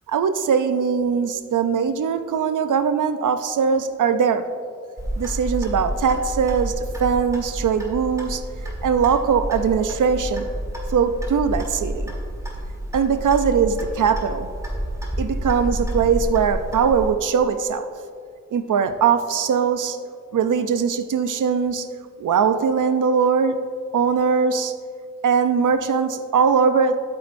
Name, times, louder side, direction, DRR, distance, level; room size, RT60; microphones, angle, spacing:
voice 1, 0.1-4.5 5.2-8.4 8.8-10.5 10.9-12.1 12.9-14.5 15.2-17.9 18.5-20.0 20.3-21.9 22.2-23.6 23.9-24.7 25.2-27.0, right 6 dB, 85° right, 10 dB, 0.6 m, -21 dB
Clock, 5.0-17.1, right 1 dB, 10° right, 1.9 m, -29 dB
12.0 x 8.4 x 2.6 m, 2.3 s
wide cardioid pair, 110°, 30 cm